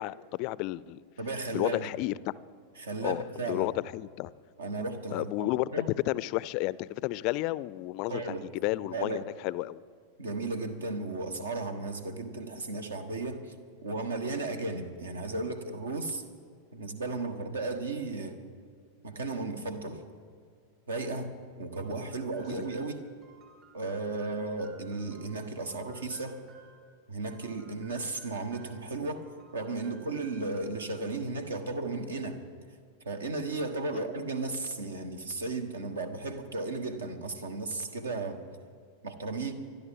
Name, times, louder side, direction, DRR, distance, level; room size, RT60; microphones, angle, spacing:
voice 1, 0.0-1.0 1.5-2.3 3.0-4.3 5.1-5.7 6.1-8.2 8.6-9.8 21.9-22.1 22.5-22.7 33.9-34.1, left 18 dB, 45° left, 20 dB, 0.4 m, -32 dB
voice 2, 1.2-1.9 2.8-3.7 4.6-5.9 8.1-8.5 8.9-9.2 10.2-13.5 13.8-16.2 16.7-18.4 19.0-20.0 20.9-23.0 23.7-26.4 27.1-32.4 33.0-38.4 39.0-39.5, right 3 dB, 70° right, 9 dB, 1.3 m, -35 dB
sound 1, 21.7-26.8 27.2-28.9 29.2-30.9, right 5 dB, 30° right, 3.4 m, -58 dB
25.0 x 12.0 x 3.7 m, 2.2 s
figure-of-eight pair, 90°, 0 cm